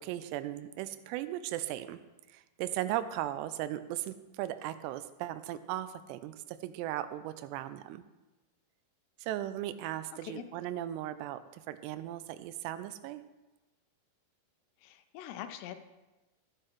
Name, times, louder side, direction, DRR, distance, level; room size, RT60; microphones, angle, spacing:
voice 1, 0.0-2.0 2.3-8.0 9.2-13.2, right 13 dB, 85° right, 11 dB, 2.7 m, -37 dB
voice 2, 14.8-15.8, left 11 dB, 85° left, 9 dB, 2.7 m, -43 dB
13.5 x 8.9 x 3.1 m, 1.1 s
omnidirectional pair, 4.8 m